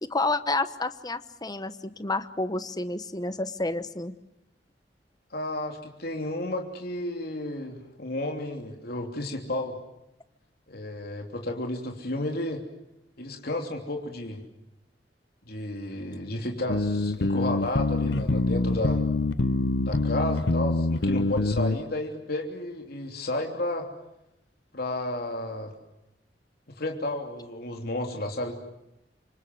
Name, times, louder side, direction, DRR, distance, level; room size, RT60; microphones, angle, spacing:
voice 1, 0.0-4.1, left 2 dB, 25° left, 12 dB, 1.0 m, -30 dB
voice 2, 5.3-9.8 10.7-12.6 13.2-14.4 15.5-19.0 19.9-23.9 24.7-25.7 26.8-28.5, left 1 dB, 60° left, 3 dB, 3.3 m, -32 dB
sound 1, 16.7-21.8, left 2 dB, 90° left, 0.9 m, -25 dB
27.0 x 24.5 x 7.9 m, 0.86 s
head